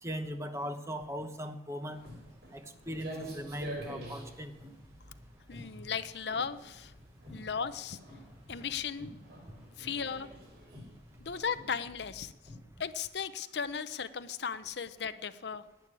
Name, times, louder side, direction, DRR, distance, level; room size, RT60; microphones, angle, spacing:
voice 1, 0.0-2.0 2.5-4.5, equal, 15° right, 8 dB, 1.0 m, -39 dB
sound 1, 1.9-12.6, left 1 dB, 35° right, 5.3 m, -53 dB
Walk footsteps, 1.9-11.4, right 1 dB, 75° right, 4.7 m, -48 dB
voice 2, 5.5-6.9 7.3-8.0 8.5-9.1 9.8-10.3 11.2-12.3 12.8-15.6, left 6 dB, 70° left, 12 dB, 0.7 m, -36 dB
11.5 x 9.4 x 9.9 m, 1.0 s
head